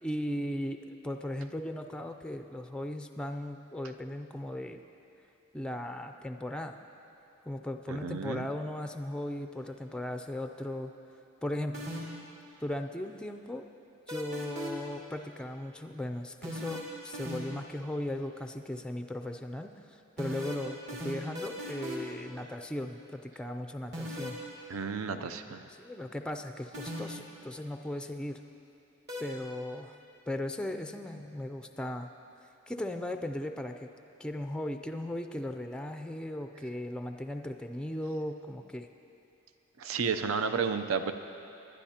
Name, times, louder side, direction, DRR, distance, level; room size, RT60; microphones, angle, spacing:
voice 1, 0.0-4.8 5.5-6.8 7.5-10.9 11.4-11.9 12.6-13.7 14.1-19.7 20.2-24.4 25.8-28.4 29.2-29.9 30.3-32.1 32.7-33.9 34.2-38.9, left 1 dB, 5° left, 6 dB, 0.3 m, -37 dB
voice 2, 7.9-8.5 24.7-25.6 39.8-41.1, right 5 dB, 80° right, 8 dB, 0.6 m, -32 dB
sound 1, 11.7-12.3 14.1-14.9 16.4-17.7 20.2-22.2 23.9-24.4 26.7-27.3 29.1-29.2, equal, 55° right, 2.2 m, -38 dB
20.0 x 11.5 x 2.9 m, 2.8 s
head